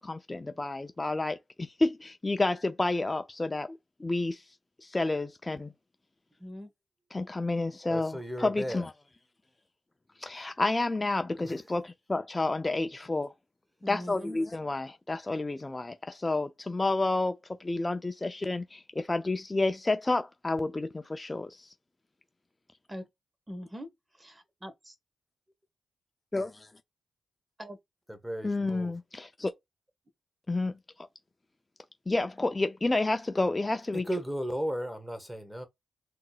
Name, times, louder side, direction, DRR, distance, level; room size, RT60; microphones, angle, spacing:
voice 1, 0.0-4.4 4.8-5.7 7.1-8.9 10.2-13.3 13.9-21.7 26.3-26.7 28.4-29.5 30.5-30.8 32.1-34.0, left 2 dB, 25° left, 0.5 m, -30 dB
voice 2, 6.4-6.7 13.8-14.4 22.9-23.1 23.5-24.9 27.6-27.8, equal, 20° right, 1.5 m, -42 dB
voice 3, 7.9-8.9 11.4-11.6 28.1-28.9 33.9-35.7, equal, ahead, 1.3 m, -35 dB
3.7 x 2.8 x 2.4 m
supercardioid pair, 50°, 0 cm